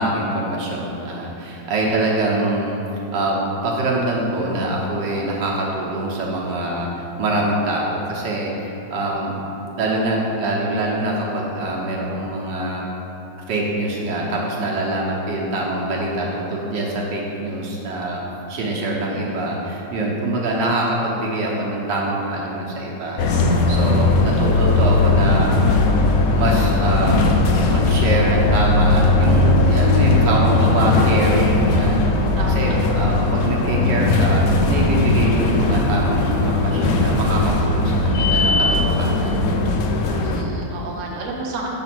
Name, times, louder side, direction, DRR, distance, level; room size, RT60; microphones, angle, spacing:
voice 1, 0.0-2.8 3.1-3.4 3.6-9.4 9.8-12.8 13.5-18.2 18.5-23.2 23.7-25.5 26.3-27.2 27.7-32.3 32.6-39.4, right 1 dB, 80° right, -3 dB, 1.6 m, -24 dB
sound 1, 23.2-40.4, left 2 dB, 70° left, 0.9 m, -18 dB
voice 2, 24.1-24.5 32.4-32.8 40.2-41.7, right 3 dB, 55° right, -2 dB, 1.0 m, -32 dB
6.2 x 4.0 x 6.0 m, 3.0 s
omnidirectional pair, 1.9 m